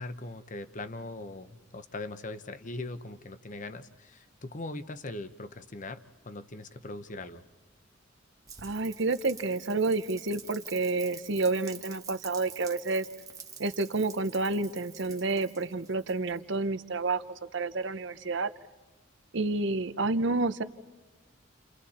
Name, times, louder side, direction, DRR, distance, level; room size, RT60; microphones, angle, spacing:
voice 1, 0.0-6.0 6.2-7.4, left 2 dB, 40° left, 11 dB, 1.0 m, -40 dB
Rain, 8.5-16.6, right 6 dB, 20° right, 1.3 m, -48 dB
voice 2, 8.6-13.0 13.6-17.2 17.5-18.5 19.3-20.6, right 3 dB, 65° right, 12 dB, 0.8 m, -29 dB
29.5 x 29.5 x 4.3 m, 1.3 s
head